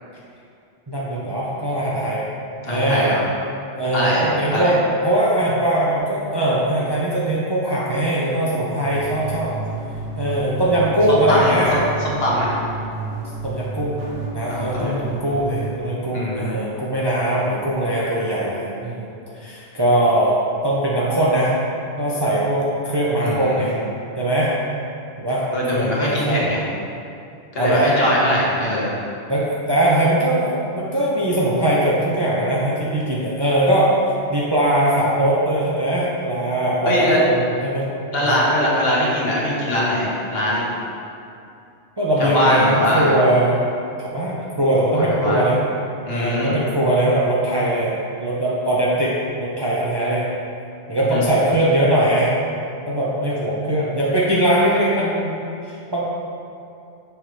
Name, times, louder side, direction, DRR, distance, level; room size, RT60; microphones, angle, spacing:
voice 1, 0.9-2.2 2.6-3.1 3.7-4.8 5.0-9.5 10.2-11.7 13.4-14.0 14.3-19.1 19.3-21.5 22.0-23.7 24.2-24.5 25.2-25.4 25.7-26.4 27.6-27.9 29.3-33.9 34.3-37.9 38.2-38.4 42.0-43.7 44.0-45.6 46.1-49.1 49.4-50.3 50.9-52.3 52.9-55.3 55.6-56.0, right 1 dB, 25° right, -7 dB, 0.6 m, -20 dB
voice 2, 2.6-3.2 3.9-4.7 11.1-12.5 14.5-14.9 16.1-16.5 23.2-23.6 25.5-26.6 27.5-29.0 36.8-37.2 38.1-40.7 42.2-43.1 44.9-45.4 46.0-46.5 51.0-51.2, left 1 dB, 60° left, -6 dB, 1.4 m, -21 dB
sound 1, 8.8-15.7, right 3 dB, 65° right, 1.2 m, -31 dB
6.2 x 4.8 x 3.3 m, 2.6 s
omnidirectional pair, 1.2 m